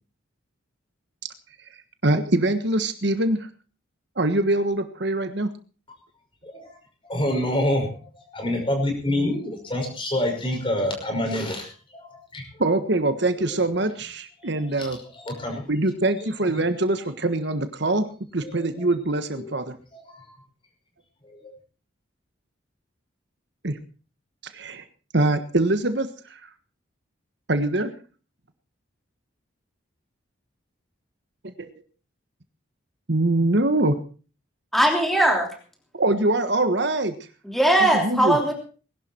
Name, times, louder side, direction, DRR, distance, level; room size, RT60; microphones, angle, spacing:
voice 1, 2.0-3.5 4.2-5.5 12.6-15.0 15.7-18.1 18.3-19.8 23.6-23.8 24.5-24.8 25.1-26.5 27.5-27.9 31.6-31.7 33.1-34.0 35.9-37.1 37.8-38.4, right 2 dB, 55° right, 9 dB, 1.4 m, -23 dB
voice 2, 6.4-6.8 7.0-8.0 8.3-12.4 14.4-14.9 15.1-15.6 16.2-16.7 18.4-18.6 19.4-19.5 19.9-20.4 21.2-21.5, left 1 dB, 25° left, 3 dB, 5.7 m, -27 dB
voice 3, 34.7-35.5 37.4-38.5, right 1 dB, ahead, 1 dB, 3.1 m, -19 dB
20.5 x 12.0 x 4.5 m, 0.37 s
head